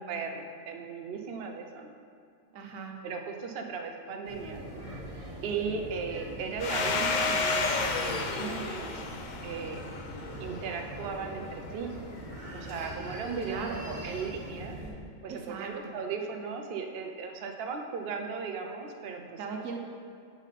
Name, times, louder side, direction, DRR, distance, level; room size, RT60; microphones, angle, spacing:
voice 1, 0.1-1.9 3.0-4.6 5.4-9.0 9.4-9.8 10.4-11.9 12.5-14.8 15.2-19.4, right 5 dB, 60° right, 3 dB, 0.7 m, -37 dB
voice 2, 2.5-3.0 13.4-13.8 15.3-15.8 19.4-19.8, right 5 dB, 75° right, 2 dB, 1.2 m, -38 dB
sound 1, 4.2-14.9, right 1 dB, 25° right, 1.3 m, -42 dB
Domestic sounds home sounds, 6.6-11.0, left 4 dB, 75° left, 0.4 m, -31 dB
7.0 x 5.6 x 4.1 m, 2.4 s
omnidirectional pair, 1.4 m